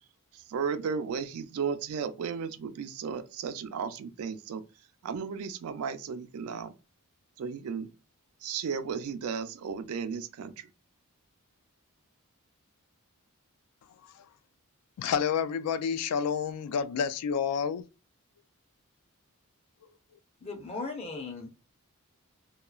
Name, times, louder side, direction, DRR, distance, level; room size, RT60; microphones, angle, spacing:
voice 1, 0.3-4.6 5.0-6.7 7.4-7.9 8.4-10.7, right 6 dB, 70° right, 0.3 m, -34 dB
voice 2, 15.0-17.8, left 7 dB, 85° left, 0.3 m, -29 dB
voice 3, 20.4-21.5, left 3 dB, 25° left, 0.6 m, -37 dB
2.9 x 2.3 x 2.3 m
head